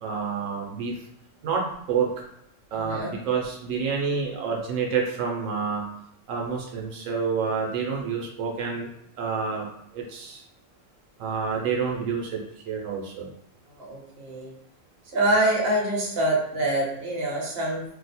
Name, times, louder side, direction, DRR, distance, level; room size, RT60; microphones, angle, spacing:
voice 1, 0.0-1.0 1.4-2.1 2.7-5.8 6.3-8.9 9.2-9.7 9.9-10.4 11.2-13.3, right 5 dB, 85° right, -1 dB, 1.0 m, -28 dB
voice 2, 2.7-3.2 13.8-14.5 15.1-17.8, right 1 dB, 50° right, -2 dB, 1.0 m, -25 dB
2.7 x 2.0 x 4.0 m, 0.74 s
omnidirectional pair, 1.3 m